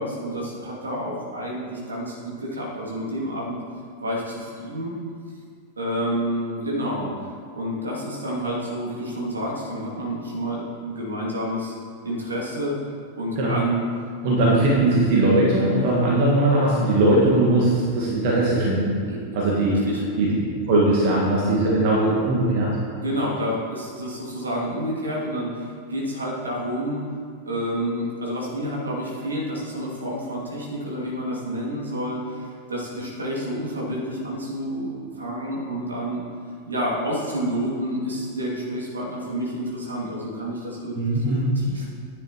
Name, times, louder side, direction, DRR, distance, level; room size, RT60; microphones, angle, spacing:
voice 1, 0.0-3.6 4.0-5.0 5.8-7.1 7.5-11.7 12.0-12.8 13.1-13.8 19.1-19.2 19.8-20.0 23.0-27.1 27.4-36.2 36.6-41.8, equal, 75° right, -5 dB, 2.4 m, -29 dB
voice 2, 14.2-19.0 19.3-19.8 20.2-22.8 41.0-41.5, right 2 dB, 50° right, -4 dB, 1.6 m, -20 dB
11.0 x 10.0 x 3.0 m, 2.1 s
figure-of-eight pair, 90°, 0 cm